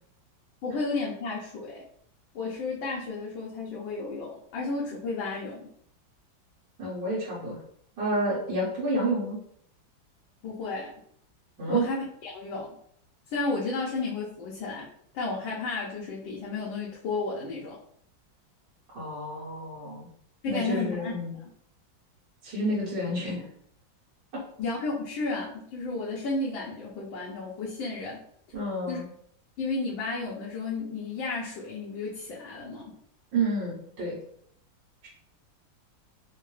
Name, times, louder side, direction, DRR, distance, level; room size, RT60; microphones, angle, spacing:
voice 1, 0.6-1.8 2.3-5.7 10.4-10.9 11.7-12.8 13.3-14.9 15.1-17.8 20.4-21.1 24.6-28.2 28.9-29.0 29.6-32.9, left 3 dB, 80° left, -4 dB, 1.4 m, -32 dB
voice 2, 6.8-7.6 8.0-9.4 11.6-11.9 18.9-20.1 20.5-21.3 22.4-23.5 24.3-24.4 28.5-29.1 33.3-34.2, right 1 dB, 60° right, -9 dB, 1.9 m, -29 dB
4.3 x 2.1 x 3.2 m, 0.67 s
omnidirectional pair, 2.1 m